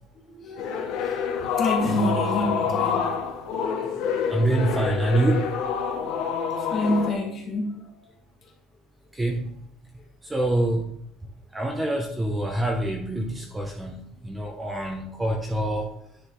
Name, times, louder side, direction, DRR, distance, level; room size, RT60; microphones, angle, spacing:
voice 1, 0.3-1.2 1.6-3.3 4.4-4.7 5.9-6.0 6.6-8.1, left 1 dB, 30° left, 1.5 m, -28 dB
sound 1, 0.6-7.1, left 7 dB, 60° left, 0.9 m, -27 dB
voice 2, 4.3-5.6 9.1-9.5 10.2-10.9 11.5-15.9, right 1 dB, 10° right, 0.6 m, -26 dB
9.8 x 3.8 x 3.1 m
cardioid pair, 170°, 0 cm